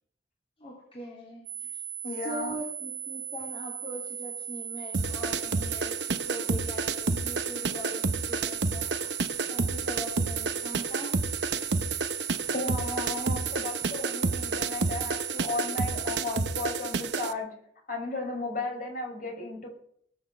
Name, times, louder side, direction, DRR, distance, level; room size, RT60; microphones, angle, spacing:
voice 1, 0.6-1.7 2.2-8.9 9.5-11.1, equal, 35° left, -3 dB, 3.2 m, -41 dB
sound 1, 1.5-16.2, right 8 dB, 40° right, 1.2 m, -38 dB
voice 2, 2.0-2.5 12.5-17.5 17.9-19.7, left 3 dB, 50° left, 1 dB, 6.0 m, -34 dB
sound 2, 4.9-17.3, right 4 dB, 75° right, 0.9 m, -30 dB
20.5 x 7.0 x 7.6 m, 0.64 s
head